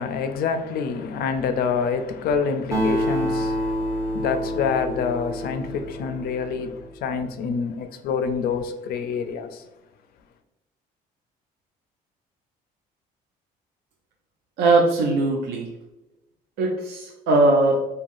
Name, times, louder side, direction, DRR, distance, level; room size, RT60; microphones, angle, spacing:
voice 1, 0.0-9.7, left 5 dB, 65° left, 0.4 m, -27 dB
Acoustic guitar, 2.7-6.5, equal, 20° right, 0.6 m, -27 dB
voice 2, 14.6-15.7 16.6-17.9, right 2 dB, 85° right, 0.5 m, -20 dB
3.3 x 2.2 x 2.5 m
cardioid pair, 110°, 17 cm